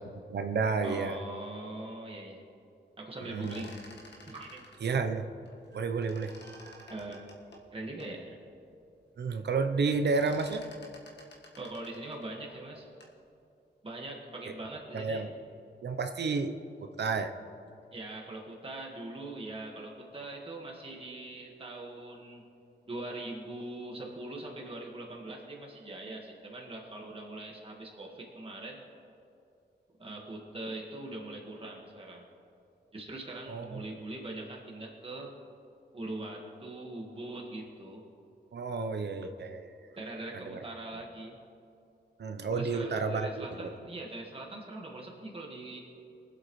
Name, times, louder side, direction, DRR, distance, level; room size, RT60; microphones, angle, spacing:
voice 1, 0.3-1.2 3.2-3.6 4.8-5.3 5.7-6.9 9.2-10.6 14.9-15.3 15.8-16.5 16.8-17.3 33.5-33.8 38.5-39.9 40.3-40.6 42.2-43.7, right 4 dB, 65° right, 8 dB, 0.7 m, -31 dB
voice 2, 0.8-2.4 3.0-3.8 4.2-4.6 6.9-7.3 7.7-8.4 11.6-12.9 13.8-15.3 17.9-22.5 22.9-28.8 30.0-32.3 32.9-35.3 35.9-38.0 40.0-41.4 42.5-45.8, right 2 dB, 30° right, -1 dB, 1.6 m, -42 dB
sound 1, 3.2-5.8 6.0-8.2 8.7-8.8 9.0-9.4 9.7-13.2, left 1 dB, 70° left, 1.5 m, -52 dB
24.0 x 8.0 x 3.1 m, 2.5 s
wide cardioid pair, 165°, 19 cm